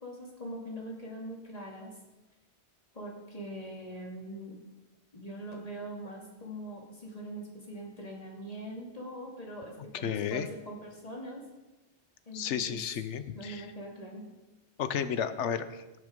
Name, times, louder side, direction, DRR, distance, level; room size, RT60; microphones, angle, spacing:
voice 1, 0.0-1.9 2.9-4.6 5.1-11.4 12.3-12.8 13.3-14.3, right 1 dB, 35° left, -2 dB, 2.6 m, -42 dB
voice 2, 10.0-10.5 12.3-13.7 14.8-15.8, left 8 dB, 85° left, 12 dB, 1.1 m, -32 dB
17.0 x 6.6 x 5.2 m, 1.1 s
omnidirectional pair, 1.2 m